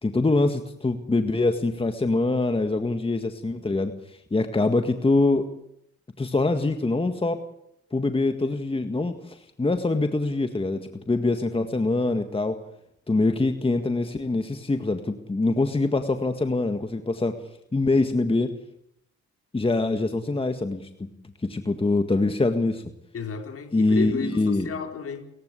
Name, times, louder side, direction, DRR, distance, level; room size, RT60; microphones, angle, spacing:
voice 1, 0.0-5.5 6.2-7.5 7.9-12.6 13.1-17.3 17.7-18.5 19.5-20.9 21.5-22.8 23.7-24.7, left 2 dB, 20° left, 7 dB, 1.8 m, -24 dB
voice 2, 23.1-25.3, left 5 dB, 50° left, 5 dB, 4.4 m, -32 dB
29.5 x 15.5 x 8.4 m, 0.76 s
cardioid pair, 90°, 30 cm